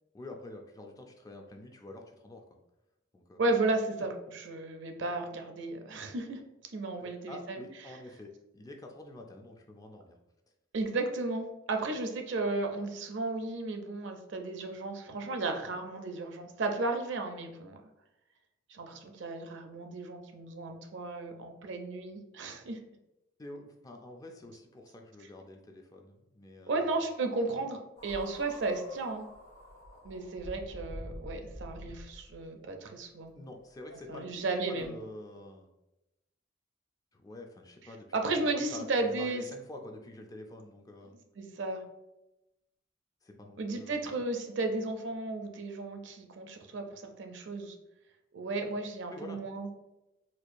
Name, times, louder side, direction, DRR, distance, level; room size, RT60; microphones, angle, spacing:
voice 1, 0.1-2.4 3.1-3.4 7.0-10.2 23.4-27.1 33.3-35.7 37.1-38.2 38.5-41.2 43.2-44.1 49.1-49.4, left 2 dB, 20° left, 3 dB, 0.3 m, -47 dB
voice 2, 3.4-6.4 6.7-7.6 10.7-17.8 18.7-22.8 26.7-29.2 30.0-33.3 34.1-35.0 38.1-39.4 41.4-41.8 43.6-47.8 48.3-49.7, right 2 dB, 65° right, 4 dB, 0.5 m, -34 dB
sound 1, 28.0-32.4 33.3-33.4 34.8-34.9, equal, 50° left, 1.0 m, -47 dB
4.4 x 2.3 x 2.5 m, 0.94 s
head